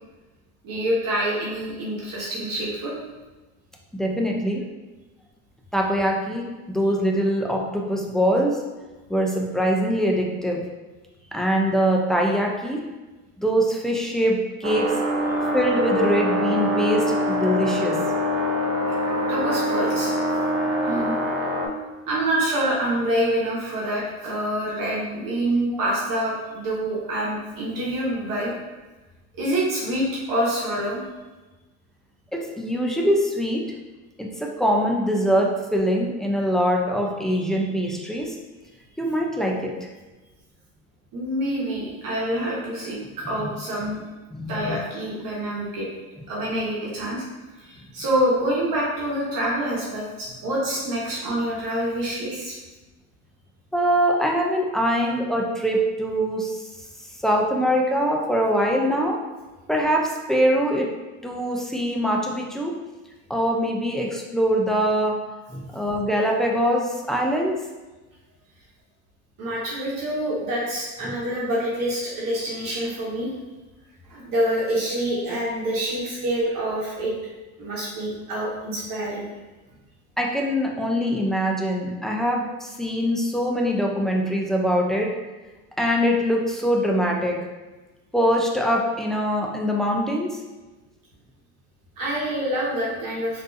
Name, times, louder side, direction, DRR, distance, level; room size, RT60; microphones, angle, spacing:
voice 1, 0.6-2.9 19.1-20.1 20.8-21.2 22.1-28.5 29.4-31.0 41.1-43.0 43.3-44.0 44.5-45.9 46.3-47.2 47.6-52.5 69.4-73.3 74.1-77.1 77.6-79.2 92.0-93.4, right 1 dB, 50° right, -6 dB, 1.1 m, -26 dB
voice 2, 3.9-4.6 5.7-8.6 9.1-10.6 11.3-12.8 13.4-14.9 15.5-18.0 20.6-21.0 32.3-33.6 34.2-38.4 39.0-39.7 43.3-43.4 43.8-43.9 44.3-44.8 53.7-56.7 57.2-59.2 59.7-60.9 61.2-62.8 63.3-65.2 65.5-67.6 71.0-71.2 80.2-85.1 85.8-87.4 88.1-90.4, equal, ahead, -1 dB, 0.3 m, -23 dB
sound 1, 14.6-21.7, equal, 35° right, 0.7 m, -24 dB
3.6 x 2.7 x 2.5 m, 1.2 s
hypercardioid pair, 75°, 43 cm